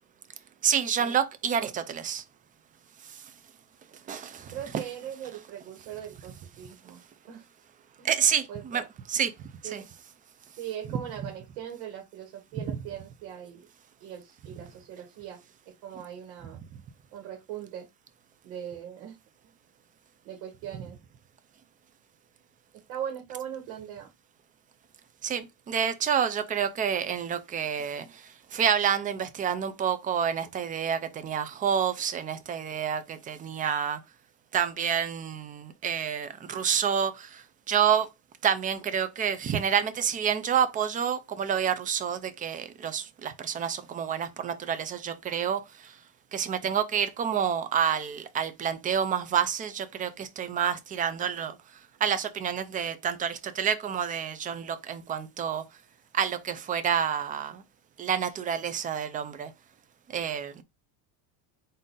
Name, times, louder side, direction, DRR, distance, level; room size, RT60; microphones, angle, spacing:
voice 1, 0.6-2.2 3.0-3.2 4.1-4.6 8.0-8.8 9.1-9.3 9.7-9.8 25.2-34.0 34.5-38.1 38.4-46.0 46.3-51.6 52.0-55.6 56.1-57.6 58.0-59.5 60.1-60.5, right 8 dB, 20° right, 0.3 m, -28 dB
voice 2, 4.5-7.0 7.3-7.4 8.0-8.1 8.5-8.9 9.6-9.9 10.6-13.7 14.0-15.4 15.8-16.6 17.1-17.9 18.4-19.2 19.4-19.5 20.2-21.0 22.9-24.1, right 10 dB, 85° right, 1.3 m, -40 dB
3.8 x 2.6 x 3.7 m
cardioid pair, 145°, 42 cm